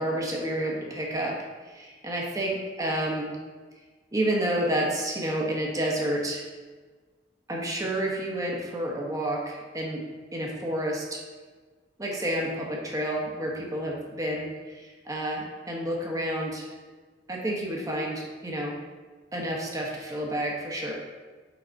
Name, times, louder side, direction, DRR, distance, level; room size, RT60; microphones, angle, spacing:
voice 1, 0.0-1.4 1.6-3.4 4.1-6.5 7.5-10.0 10.3-11.2 12.0-16.7 17.3-18.8 19.3-20.9, right 1 dB, 20° right, -1 dB, 1.1 m, -30 dB
6.0 x 4.8 x 4.0 m, 1.4 s
head